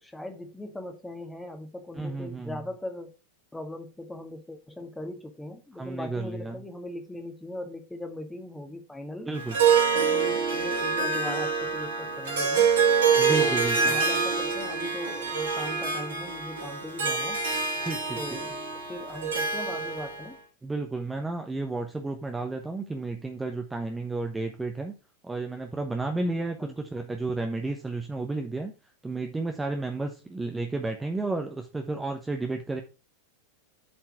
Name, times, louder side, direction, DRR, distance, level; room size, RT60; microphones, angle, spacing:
voice 1, 0.0-3.1 3.5-9.3 9.9-12.8 13.3-17.5 18.2-20.4 26.6-26.8, left 1 dB, 5° left, 1.6 m, -39 dB
voice 2, 1.9-2.6 5.7-6.6 9.3-9.6 13.2-14.0 17.8-18.4 20.6-24.9 25.2-28.7 29.0-32.8, right 3 dB, 10° right, 1.0 m, -32 dB
Harp, 9.3-20.3, right 5 dB, 65° right, 2.8 m, -26 dB
7.5 x 4.5 x 5.7 m
figure-of-eight pair, 90°, 0 cm